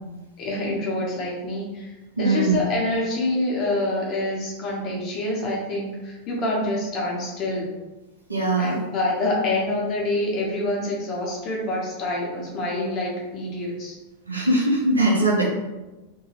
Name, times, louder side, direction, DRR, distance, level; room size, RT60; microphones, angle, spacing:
voice 1, 0.4-1.9 2.2-7.7 8.6-13.9, left 2 dB, 35° left, -2 dB, 1.0 m, -26 dB
voice 2, 2.2-2.6 8.3-8.8 14.3-15.4, right 2 dB, 80° right, -3 dB, 0.8 m, -21 dB
2.8 x 2.7 x 3.0 m, 1.1 s
figure-of-eight pair, 90°, 0 cm